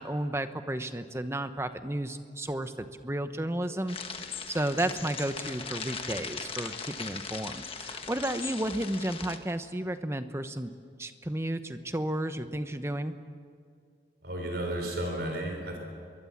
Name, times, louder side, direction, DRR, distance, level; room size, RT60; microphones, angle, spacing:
voice 1, 0.0-13.1, right 1 dB, 15° right, 9 dB, 0.9 m, -33 dB
sound 1, 3.9-9.4, left 5 dB, 30° left, 1.4 m, -39 dB
voice 2, 14.2-15.8, right 1 dB, 60° right, 2 dB, 4.2 m, -33 dB
26.0 x 22.5 x 7.3 m, 2.3 s
head